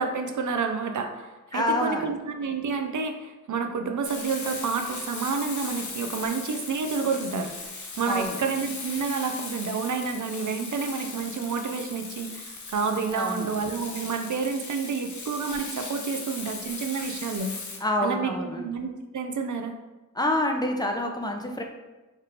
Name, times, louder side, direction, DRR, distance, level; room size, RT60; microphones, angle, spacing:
voice 1, 0.0-17.5 18.0-19.7, right 5 dB, 70° right, 5 dB, 0.5 m, -29 dB
voice 2, 1.5-2.1 8.1-8.4 13.1-13.5 17.8-18.7 20.1-21.6, left 1 dB, 15° left, 2 dB, 0.6 m, -27 dB
Frying (food), 4.0-17.8, left 3 dB, 70° left, 0.7 m, -38 dB
3.3 x 2.5 x 4.4 m, 1.1 s
wide cardioid pair, 60°, 31 cm